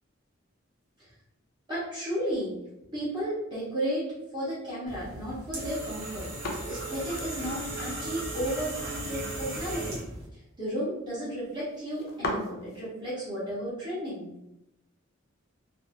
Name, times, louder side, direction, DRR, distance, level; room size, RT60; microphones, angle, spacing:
voice 1, 1.7-2.5 2.9-4.1 4.3-6.3 6.7-10.0 10.6-14.3, equal, 20° right, -11 dB, 1.0 m, -33 dB
sound 1, 4.9-10.3, right 2 dB, 50° right, 0.8 m, -36 dB
sound 2, 5.9-12.9, left 1 dB, 50° left, 0.5 m, -41 dB
2.7 x 2.3 x 2.8 m, 0.89 s
head